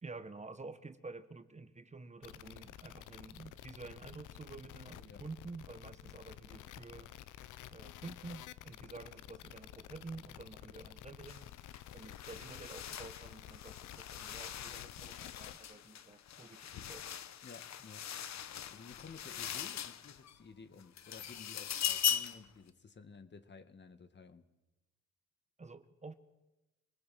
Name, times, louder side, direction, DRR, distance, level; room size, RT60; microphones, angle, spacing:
voice 1, 0.0-7.1 7.7-11.5 11.9-17.1 25.6-26.1, right 3 dB, 25° right, 10 dB, 1.4 m, -50 dB
sound 1, 2.2-15.5, left 12 dB, 85° left, 1.0 m, -51 dB
sound 2, 11.3-11.5 11.7-20.4 20.8-22.5, left 9 dB, 65° left, 1.3 m, -40 dB
voice 2, 17.4-18.1 18.7-24.5, left 5 dB, 35° left, 10 dB, 2.0 m, -54 dB
25.5 x 19.5 x 7.8 m, 1.0 s
cardioid pair, 90°, 30 cm